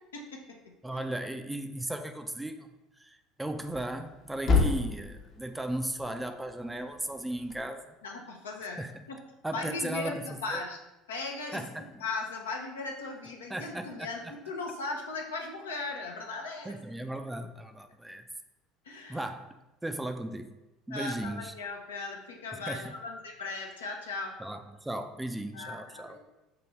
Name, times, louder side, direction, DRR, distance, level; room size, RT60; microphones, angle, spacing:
voice 1, 0.1-0.7 8.0-8.8 9.1-9.2 9.5-10.8 11.1-11.6 12.0-16.8 18.8-19.2 20.9-24.4 25.5-26.2, left 3 dB, 75° left, 2 dB, 0.5 m, -38 dB
voice 2, 0.8-2.7 3.0-7.9 8.8-9.0 9.4-10.6 11.5-12.0 13.5-14.1 16.6-18.3 19.1-19.5 19.8-20.5 20.9-21.5 22.5-23.0 24.4-26.2, right 1 dB, 10° right, 7 dB, 0.3 m, -36 dB
Thump thud, 3.6-7.7, left 4 dB, 45° left, 0.8 m, -32 dB
5.6 x 2.5 x 3.0 m, 0.98 s
figure-of-eight pair, 65°, 0 cm